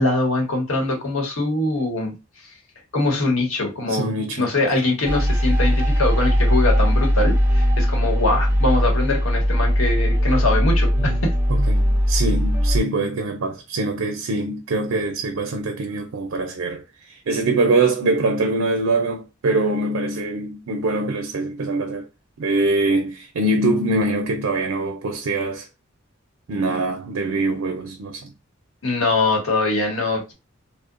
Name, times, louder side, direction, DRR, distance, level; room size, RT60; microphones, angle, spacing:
voice 1, 0.0-2.1 2.9-4.1 4.4-11.3 28.8-30.3, left 2 dB, 90° left, 1.0 m, -22 dB
voice 2, 3.9-4.5 11.0-11.2 11.5-22.1 22.4-25.7 26.5-28.3, right 2 dB, 85° right, 0.5 m, -23 dB
sound 1, 5.0-12.8, equal, 10° right, 0.4 m, -19 dB
2.8 x 2.0 x 2.4 m
head